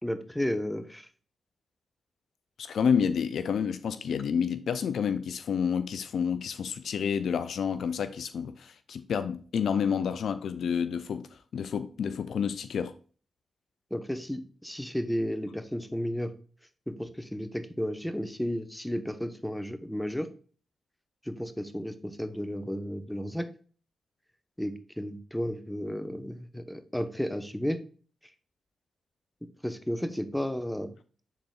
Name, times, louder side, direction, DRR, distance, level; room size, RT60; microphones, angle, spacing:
voice 1, 0.0-1.1 13.9-16.3 16.9-20.3 21.2-23.5 24.6-27.8 29.6-30.9, equal, 5° left, 1.0 m, -33 dB
voice 2, 2.6-12.9, left 7 dB, 75° left, 0.4 m, -29 dB
10.0 x 4.1 x 2.4 m
supercardioid pair, 45°, 0 cm